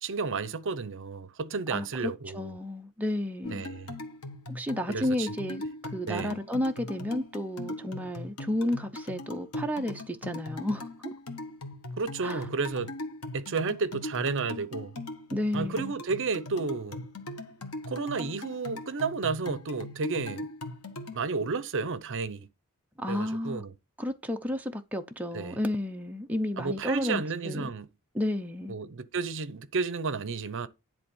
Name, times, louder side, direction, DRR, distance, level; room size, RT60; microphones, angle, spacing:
voice 1, 0.0-2.5 3.5-3.9 4.9-5.3 6.1-6.4 12.0-12.9 13.3-14.9 15.5-17.0 17.9-20.5 21.1-22.5 23.1-23.7 25.3-25.6 26.6-27.9 28.7-30.7, right 4 dB, 60° right, 0.7 m, -32 dB
voice 2, 1.7-3.6 4.5-11.1 12.2-12.5 15.3-15.9 23.0-23.6 24.0-27.7 28.1-28.7, left 1 dB, 5° right, 0.7 m, -32 dB
sound 1, 3.4-21.2, left 1 dB, 90° left, 1.5 m, -40 dB
10.5 x 3.6 x 7.0 m
head